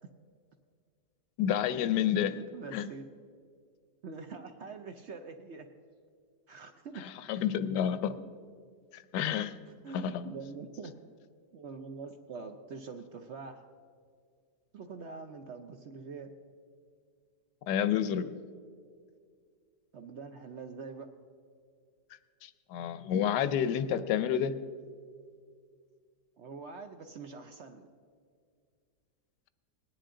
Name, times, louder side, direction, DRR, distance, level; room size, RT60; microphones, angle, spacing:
voice 1, 1.4-2.4 2.7-2.8 7.3-8.2 8.9-9.5 9.9-10.2 17.7-18.3 22.4-24.6, left 9 dB, 85° left, 13 dB, 1.3 m, -29 dB
voice 2, 2.3-3.1 4.0-5.7 6.5-7.0 9.7-10.9 11.5-13.6 14.7-16.3 19.9-21.1 26.4-27.9, right 4 dB, 60° right, 6 dB, 0.7 m, -44 dB
19.5 x 10.0 x 3.8 m, 2.1 s
omnidirectional pair, 1.8 m